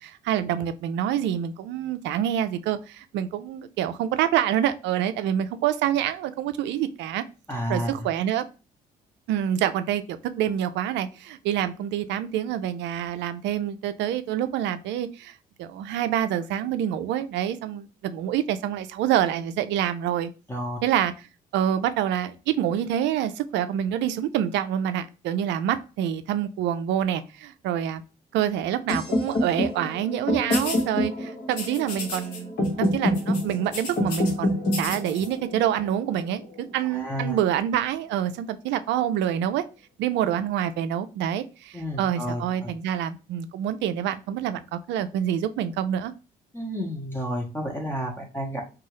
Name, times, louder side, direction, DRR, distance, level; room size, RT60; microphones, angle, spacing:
voice 1, 0.0-7.2 7.7-8.4 9.3-20.3 20.8-21.1 21.5-28.0 28.3-39.6 40.0-46.1, right 10 dB, 60° right, 12 dB, 0.4 m, -27 dB
voice 2, 7.5-8.1 20.5-20.8 36.9-37.4 41.7-42.7 46.5-48.6, equal, 10° left, 0 dB, 0.8 m, -31 dB
sound 1, 28.9-36.8, left 1 dB, 50° left, 1.1 m, -27 dB
sound 2, 30.5-30.8 31.5-32.4 32.6-32.9 33.1-34.3 34.7-35.3, left 4 dB, 80° left, 0.8 m, -34 dB
2.7 x 2.3 x 3.0 m, 0.32 s
hypercardioid pair, 50°, 21 cm